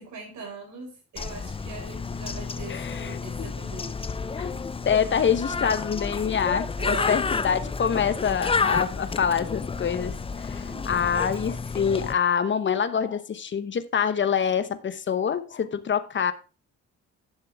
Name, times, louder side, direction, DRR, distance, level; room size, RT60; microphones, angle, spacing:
voice 1, 0.0-4.2 6.8-7.7 10.6-10.9, right 4 dB, 70° right, 5.1 m, -41 dB
Bird, 1.2-12.1, left 4 dB, 20° left, 0.5 m, -30 dB
voice 2, 2.7-3.5 4.4-4.5 4.9-10.1 10.4-16.3, left 7 dB, 40° left, 0.9 m, -26 dB
11.0 x 6.6 x 3.5 m
cardioid pair, 90°, 30 cm